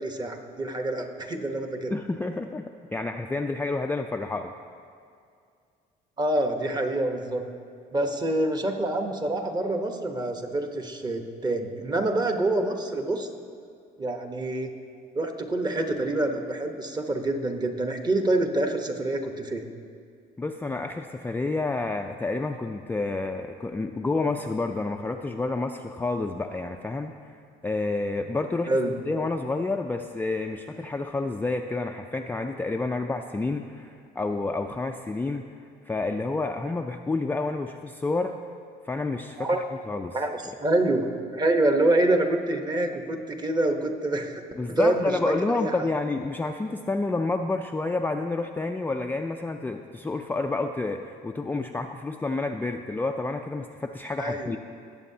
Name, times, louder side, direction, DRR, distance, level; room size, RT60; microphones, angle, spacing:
voice 1, 0.0-1.9 6.2-7.4 7.9-13.3 14.0-14.7 15.1-19.7 28.7-29.0 39.4-39.6 40.1-41.0 41.3-44.4 44.7-45.2 45.5-45.9 54.2-54.6, right 2 dB, 25° right, 5 dB, 1.0 m, -26 dB
voice 2, 1.9-4.5 20.4-27.1 27.6-28.7 29.1-35.5 35.9-38.4 38.8-39.5 39.9-40.2 44.6-54.6, left 3 dB, 10° left, 3 dB, 0.3 m, -29 dB
18.5 x 7.6 x 2.8 m, 2.3 s
cardioid pair, 110°, 17 cm